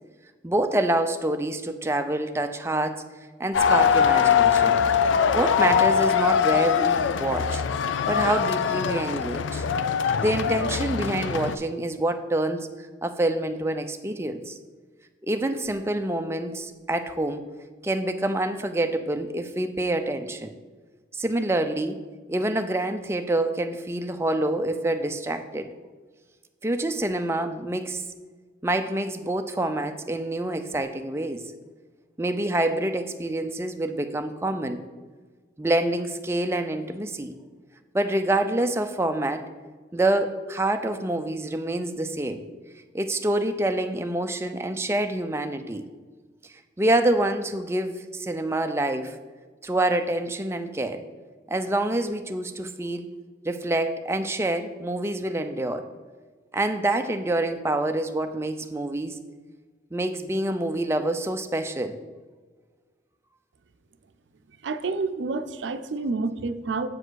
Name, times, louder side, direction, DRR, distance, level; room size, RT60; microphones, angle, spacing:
voice 1, 0.4-3.0 3.4-4.8 5.3-7.6 8.1-9.6 10.2-12.7 13.0-14.6 15.2-17.5 17.8-20.5 21.1-22.0 22.3-25.7 26.6-28.0 28.6-31.4 32.2-34.8 35.6-37.3 37.9-39.5 39.9-42.4 42.9-45.9 46.8-49.2 49.6-51.0 51.5-53.1 53.4-55.8 56.5-59.2 59.9-62.0, right 1 dB, 15° right, 7 dB, 0.5 m, -26 dB
sound 1, 3.5-11.5, left 7 dB, 85° left, 0.4 m, -22 dB
voice 2, 64.6-66.9, right 3 dB, 80° right, 10 dB, 0.5 m, -29 dB
7.7 x 4.9 x 6.3 m, 1.4 s
head